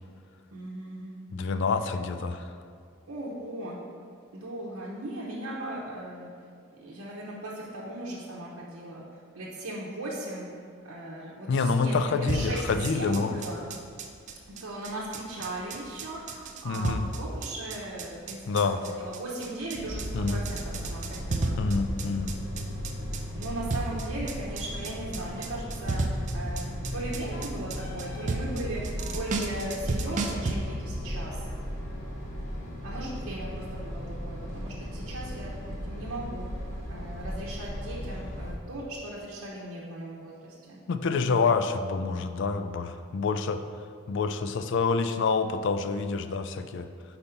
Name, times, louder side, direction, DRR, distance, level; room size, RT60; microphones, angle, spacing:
voice 1, 0.5-1.1 3.1-3.8 4.3-6.3 6.8-9.0 9.3-10.5 10.8-12.6 12.9-13.7 14.5-18.4 18.6-21.6 23.3-31.3 32.8-35.5 35.9-36.5 36.9-40.8, right 1 dB, 70° right, -7 dB, 0.8 m, -38 dB
voice 2, 1.3-2.5 11.5-13.4 16.6-17.1 18.5-18.8 20.1-20.4 21.6-22.3 40.9-43.6 44.1-46.9, left 4 dB, 55° left, 10 dB, 0.3 m, -27 dB
sound 1, 12.3-30.6, right 3 dB, 35° right, 0.4 m, -33 dB
sound 2, 19.8-38.5, equal, 35° left, 1.0 m, -37 dB
Wind instrument woodwind instrument, 27.3-28.4 29.0-29.4 30.1-33.1, left 2 dB, 85° left, 0.9 m, -50 dB
5.2 x 4.2 x 5.7 m, 2.2 s
head